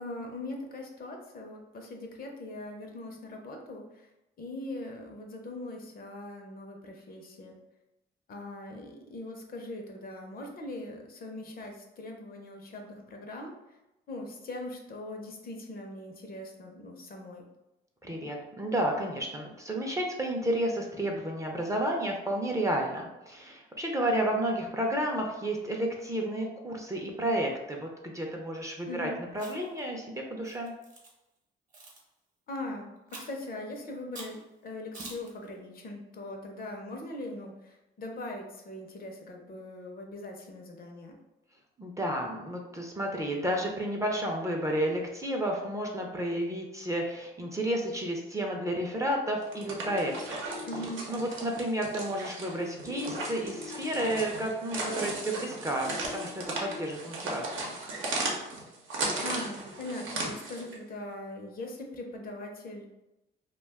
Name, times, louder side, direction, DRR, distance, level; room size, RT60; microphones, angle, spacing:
voice 1, 0.0-4.1 4.4-7.6 8.3-13.5 14.1-17.4 28.9-29.1 32.5-41.1 50.7-51.1 59.2-62.9, left 2 dB, 50° left, 2 dB, 0.6 m, -41 dB
voice 2, 18.0-30.7 41.8-50.4 51.1-57.7, right 1 dB, 15° right, 0 dB, 0.5 m, -31 dB
Chewing mastication, 29.3-29.8 30.4-31.1 31.7-32.0 33.1-33.4 34.1-34.4 34.9-35.3, right 2 dB, 40° right, 0.9 m, -45 dB
sound 1, 49.4-60.8, right 2 dB, 80° right, 0.7 m, -36 dB
sound 2, 49.9-50.9 52.8-53.9 55.8-56.9, left 5 dB, 80° left, 0.8 m, -43 dB
2.3 x 2.2 x 3.4 m, 0.94 s
cardioid pair, 90°, 20 cm